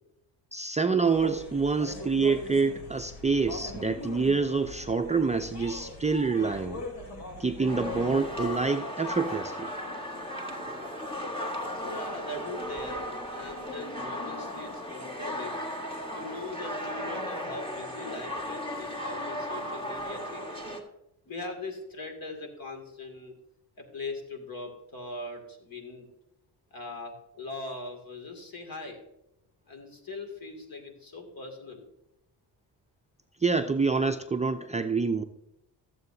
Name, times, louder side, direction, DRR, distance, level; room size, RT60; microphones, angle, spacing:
voice 1, 0.5-6.8 7.4-9.7 33.4-35.2, right 4 dB, 15° right, 5 dB, 0.5 m, -27 dB
sound 1, 1.0-8.6, left 1 dB, 85° left, 3.4 m, -41 dB
sound 2, 7.7-20.8, left 1 dB, 15° left, 1.8 m, -36 dB
voice 2, 11.8-15.6 16.1-20.6 21.3-23.3 23.8-26.1 26.7-29.0 29.7-31.8, left 3 dB, 55° left, 4 dB, 2.6 m, -41 dB
14.5 x 7.8 x 2.7 m, 0.87 s
cardioid pair, 90°, 42 cm